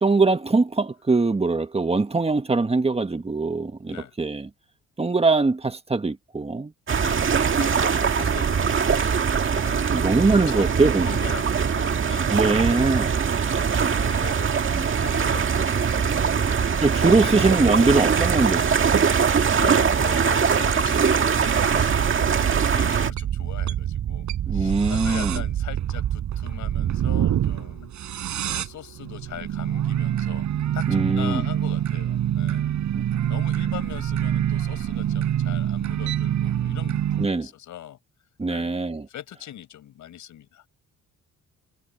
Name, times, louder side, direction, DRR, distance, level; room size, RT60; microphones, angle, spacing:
voice 1, 0.0-4.5 5.0-6.7 9.9-11.1 12.3-13.2 14.7-14.9 16.8-19.0 24.5-25.4 30.9-31.4 32.9-33.0 37.2-37.5 38.4-39.1, right 3 dB, 20° right, 1.6 m, -22 dB
voice 2, 6.9-7.3 7.6-12.4 13.7-16.6 17.1-17.5 19.5-27.9 28.4-30.5 30.7-32.7 33.3-38.0 38.5-38.7 39.1-40.6, left 11 dB, 75° left, 7.4 m, -40 dB
sound 1, 6.9-23.1, right 6 dB, 40° right, 1.9 m, -22 dB
sound 2, 21.3-37.3, right 11 dB, 70° right, 6.0 m, -26 dB
cardioid pair, 90°, 30 cm